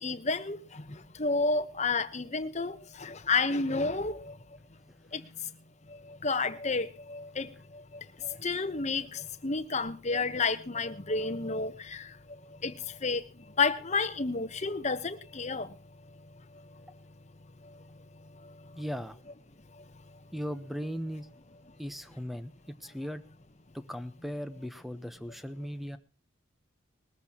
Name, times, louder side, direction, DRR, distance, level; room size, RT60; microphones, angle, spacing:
voice 1, 0.0-4.4 5.1-5.5 5.9-15.8 17.6-17.8 18.4-18.8 19.8-19.9, left 4 dB, 35° left, 1.0 m, -31 dB
voice 2, 18.8-19.2 20.3-21.3 21.8-22.5 22.8-23.2 23.7-26.0, equal, ahead, 0.9 m, -37 dB
20.5 x 14.5 x 2.9 m
head